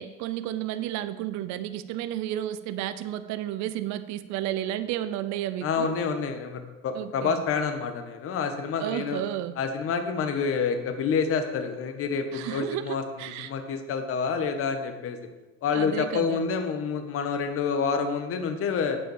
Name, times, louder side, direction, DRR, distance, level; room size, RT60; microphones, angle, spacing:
voice 1, 0.0-5.9 6.9-7.4 8.8-9.5 12.3-13.5 15.7-16.4, right 12 dB, 50° right, 12 dB, 0.7 m, -32 dB
voice 2, 5.6-9.2 9.6-15.2 15.6-19.0, left 5 dB, 40° left, 7 dB, 1.2 m, -28 dB
8.5 x 5.6 x 7.0 m, 1.1 s
supercardioid pair, 110°, 36 cm